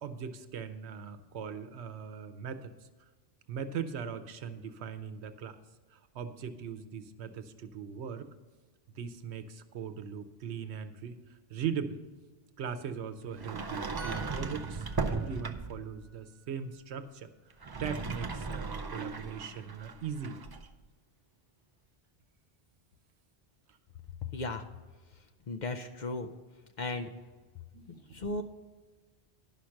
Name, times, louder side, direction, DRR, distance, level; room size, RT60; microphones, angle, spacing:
voice 1, 0.0-2.7 3.5-5.6 5.9-8.3 9.0-12.0 12.6-17.3 17.8-20.4 27.7-28.4, right 7 dB, 85° right, 10 dB, 1.0 m, -40 dB
Sliding door, 13.4-15.9 17.5-20.7, right 4 dB, 40° right, 0.3 m, -37 dB
sound 1, 14.0-17.6 17.9-18.1, right 3 dB, 75° left, 3.8 m, -52 dB
voice 2, 24.3-24.7 25.5-26.3 26.8-27.1 28.1-28.4, left 2 dB, 55° left, 5 dB, 0.6 m, -35 dB
11.0 x 5.8 x 6.3 m, 1.3 s
omnidirectional pair, 1.1 m